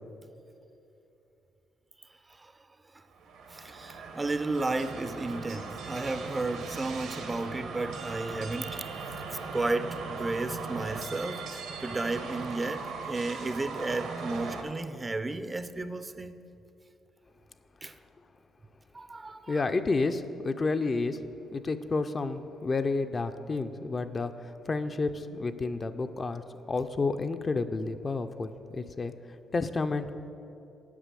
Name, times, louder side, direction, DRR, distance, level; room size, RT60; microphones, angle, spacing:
voice 1, 2.3-2.6 2.9-3.0 3.5-8.9 9.3-16.4 17.8-17.9 18.9-19.7, right 2 dB, 20° right, 11 dB, 0.4 m, -33 dB
sound 1, 3.1-14.6, right 4 dB, 85° right, 1.2 m, -39 dB
voice 2, 19.5-21.2 21.5-29.1 29.5-30.1, left 3 dB, 35° left, 9 dB, 0.4 m, -30 dB
8.3 x 5.6 x 7.5 m, 2.8 s
cardioid pair, 90°, 0 cm